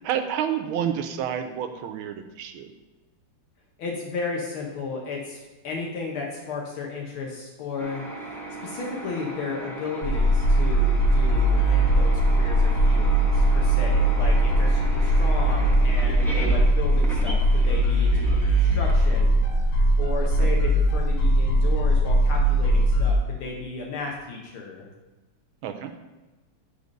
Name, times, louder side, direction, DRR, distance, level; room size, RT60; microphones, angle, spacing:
voice 1, 0.0-2.7 20.4-20.5 25.6-25.9, right 9 dB, 75° right, 7 dB, 1.4 m, -29 dB
voice 2, 3.8-24.9, left 4 dB, 75° left, -1 dB, 1.8 m, -34 dB
sound 1, 7.8-19.8, right 2 dB, ahead, 0.6 m, -37 dB
sound 2, 10.0-23.1, right 1 dB, 50° left, 1.3 m, -20 dB
8.3 x 4.1 x 5.2 m, 1.1 s
omnidirectional pair, 2.4 m